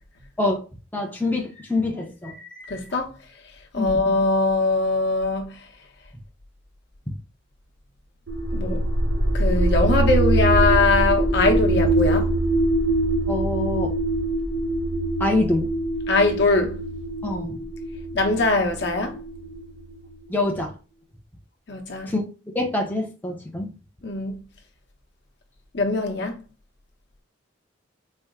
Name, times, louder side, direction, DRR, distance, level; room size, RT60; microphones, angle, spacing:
voice 1, 0.9-2.8 3.8-4.0 13.3-13.9 15.2-15.7 17.2-17.6 20.3-20.7 22.1-22.2 22.5-23.7, left 2 dB, 10° left, 0.5 m, -25 dB
voice 2, 2.7-3.1 3.7-5.5 8.5-8.8 9.3-12.3 16.1-16.8 18.1-19.1 21.7-22.1 24.0-24.4 25.7-26.4, left 3 dB, 55° left, 0.8 m, -21 dB
sound 1, 8.3-20.1, right 1 dB, 70° right, 0.9 m, -23 dB
4.2 x 2.0 x 3.5 m
head